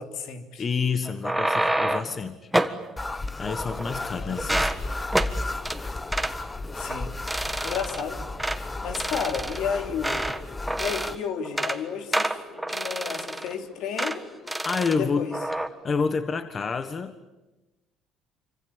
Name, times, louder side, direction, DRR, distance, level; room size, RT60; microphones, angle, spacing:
voice 1, 0.0-0.7 4.1-4.7 6.7-7.1 7.6-8.3 8.8-10.3 10.8-14.2 14.9-15.4, left 7 dB, 70° left, 6 dB, 3.2 m, -32 dB
voice 2, 0.6-2.5 3.4-4.7 14.6-15.3 15.8-17.1, left 5 dB, 35° left, 10 dB, 1.4 m, -28 dB
sound 1, 1.0-2.2 2.5-2.8 3.4-4.1 4.4-4.8 5.1-5.3 5.7-5.8 6.1-6.4 6.8-7.0 7.3-8.0 8.4-8.6 8.9-10.4 10.7-11.2 11.5-11.8 12.1-13.5 14.0-14.2 14.5-15.0 15.3-15.7, right 1 dB, 5° right, 1.6 m, -28 dB
sound 2, 3.0-11.2, left 2 dB, 15° left, 1.0 m, -34 dB
sound 3, 3.6-16.0, left 6 dB, 55° left, 2.3 m, -49 dB
26.5 x 25.0 x 8.8 m, 1.1 s
cardioid pair, 105°, 0 cm